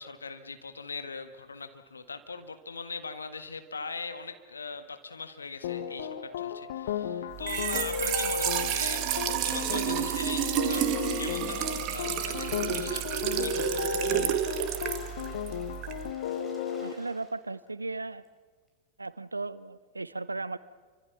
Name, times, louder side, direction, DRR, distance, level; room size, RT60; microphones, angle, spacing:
voice 1, 0.0-14.3 14.6-15.0, left 4 dB, 75° left, 9 dB, 1.7 m, -41 dB
sound 1, 5.6-16.9, left 8 dB, 60° left, 1.3 m, -34 dB
Trickle dribble / Fill (with liquid), 7.3-16.1, right 11 dB, 40° right, 1.9 m, -30 dB
Water / Splash splatter, 13.8-17.7 18.2-18.3 18.7-18.8, equal, 10° left, 5.6 m, -54 dB
voice 2, 16.8-18.2 19.0-20.6, right 3 dB, 80° right, 18 dB, 0.8 m, -36 dB
28.5 x 25.0 x 5.9 m, 1.5 s
figure-of-eight pair, 90°, 0 cm